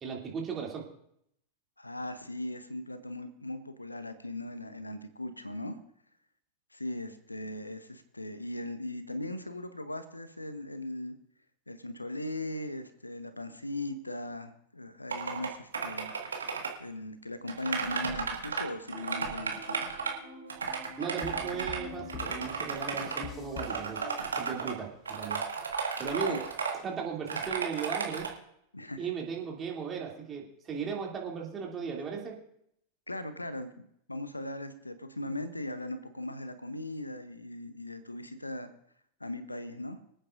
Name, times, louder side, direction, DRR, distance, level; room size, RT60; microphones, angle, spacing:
voice 1, 0.0-0.9 21.0-24.0 24.3-25.4 26.0-26.4 26.7-28.3 29.0-32.4, right 6 dB, 25° right, -1 dB, 2.8 m, -36 dB
voice 2, 1.8-5.8 6.7-11.2 11.7-16.1 16.8-19.9 26.3-26.4 28.7-29.1 31.9-32.0 33.1-33.7 34.1-38.7 39.2-40.0, left 1 dB, 85° left, 11 dB, 0.8 m, -39 dB
sound 1, 15.1-15.5 15.7-16.7 17.5-18.6 18.9-20.1 20.5-21.8 22.1-23.2 23.6-24.7 25.1-26.7 27.3-28.3, right 5 dB, 70° right, 1.8 m, -33 dB
sound 2, 18.9-24.1, left 1 dB, 55° right, 4.4 m, -47 dB
sound 3, 21.2-24.8, left 9 dB, 30° left, 1.0 m, -46 dB
25.0 x 8.9 x 2.6 m, 0.73 s
figure-of-eight pair, 90°, 0 cm